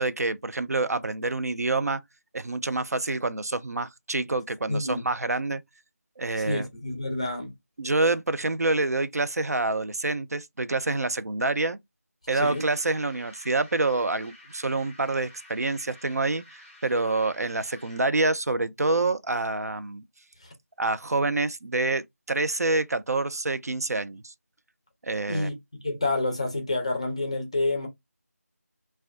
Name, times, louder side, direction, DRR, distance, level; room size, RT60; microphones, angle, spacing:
voice 1, 0.0-2.0 2.3-5.6 6.2-6.6 7.8-11.8 12.3-20.0 20.8-24.3 25.0-25.5, right 2 dB, 75° right, 0.4 m, -27 dB
voice 2, 4.7-5.1 6.4-7.5 12.3-12.6 20.4-20.5 25.3-25.6 25.8-27.9, left 2 dB, 25° left, 0.5 m, -28 dB
sound 1, 12.4-18.2, left 1 dB, 5° right, 0.8 m, -51 dB
2.4 x 2.1 x 2.4 m
figure-of-eight pair, 170°, 9 cm